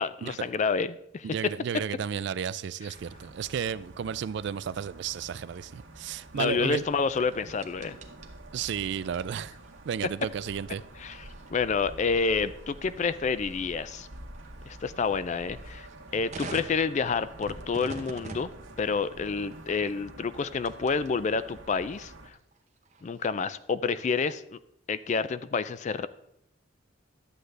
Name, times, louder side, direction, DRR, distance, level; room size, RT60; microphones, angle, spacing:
voice 1, 0.0-1.3 6.3-8.0 11.0-11.2 11.5-14.1 14.7-15.9 16.1-18.5 18.8-22.4 23.0-24.6 24.9-26.1, left 5 dB, 35° left, 0.3 m, -29 dB
voice 2, 1.2-6.8 8.5-9.6 9.8-10.8, right 7 dB, 60° right, 0.3 m, -33 dB
sound 1, 2.9-22.3, right 1 dB, 80° right, 1.3 m, -48 dB
sound 2, 5.3-21.1 21.5-23.6, right 2 dB, 35° right, 0.9 m, -49 dB
11.5 x 7.8 x 3.3 m
head